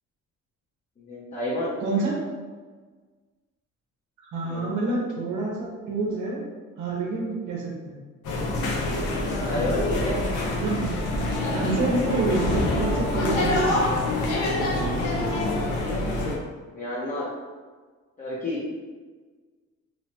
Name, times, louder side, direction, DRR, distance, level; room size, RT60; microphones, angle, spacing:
voice 1, 1.0-1.8 4.4-4.7 9.4-10.2 16.7-17.3 18.2-18.6, left 1 dB, 25° left, -7 dB, 0.7 m, -29 dB
voice 2, 1.8-2.2 4.2-6.4 6.8-8.0 10.6-10.9 11.5-14.0, right 3 dB, 75° right, -1 dB, 0.8 m, -28 dB
sound 1, 8.2-16.4, left 2 dB, 75° left, 0.6 m, -26 dB
3.0 x 2.1 x 2.8 m, 1.4 s
cardioid pair, 90°, 30 cm